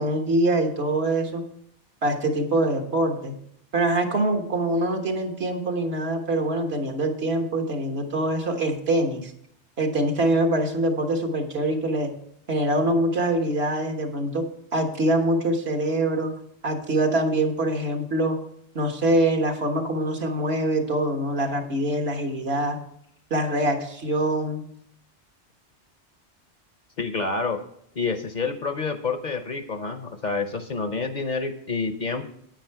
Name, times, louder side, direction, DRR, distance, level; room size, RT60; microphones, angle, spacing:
voice 1, 0.0-1.4 2.0-3.4 3.7-9.3 9.8-12.1 12.5-14.5 14.7-16.3 16.6-18.4 18.7-22.8 23.3-24.6, right 1 dB, 65° right, 4 dB, 1.5 m, -24 dB
voice 2, 27.0-27.6 28.0-32.2, left 4 dB, 45° left, 8 dB, 0.8 m, -28 dB
9.2 x 8.5 x 4.6 m, 0.69 s
omnidirectional pair, 1.2 m